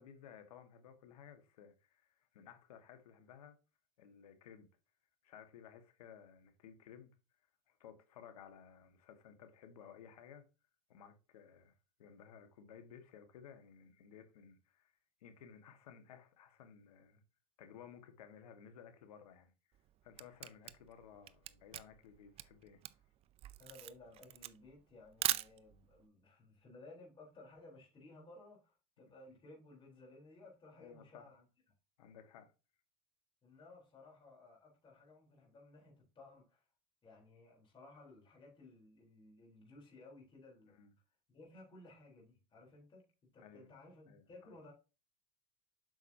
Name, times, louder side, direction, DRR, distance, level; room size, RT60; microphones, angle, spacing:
voice 1, 0.0-3.6 4.0-4.7 5.2-7.1 7.7-10.4 10.9-14.9 15.2-17.2 17.6-19.5 20.0-22.8 30.8-31.3 32.0-32.5 40.7-40.9 43.4-43.7 44.1-44.2, left 8 dB, 90° left, 1.7 m, -57 dB
Camera, 19.7-26.0, right 13 dB, 30° right, 0.5 m, -41 dB
voice 2, 23.6-31.5 33.4-36.7 37.0-40.8 41.3-44.7, left 2 dB, 25° left, 3.9 m, -58 dB
8.1 x 5.9 x 2.8 m
supercardioid pair, 125°, 19 cm